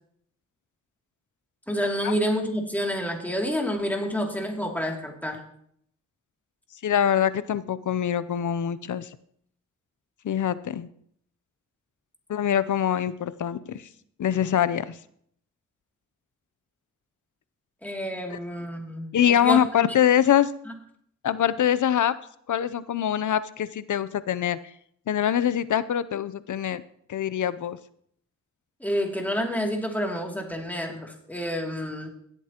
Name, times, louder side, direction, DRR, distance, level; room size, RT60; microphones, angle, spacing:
voice 1, 1.7-5.4 17.8-19.6 20.7-20.8 28.8-32.1, equal, 5° left, 1 dB, 2.7 m, -29 dB
voice 2, 6.8-9.1 10.2-10.9 12.3-13.9 14.2-15.0 18.3-18.4 19.1-20.5 21.2-22.2 22.5-24.6 25.1-26.8 27.1-27.8, left 10 dB, 65° left, 16 dB, 0.6 m, -24 dB
17.5 x 8.2 x 2.9 m, 0.67 s
cardioid pair, 60°, 33 cm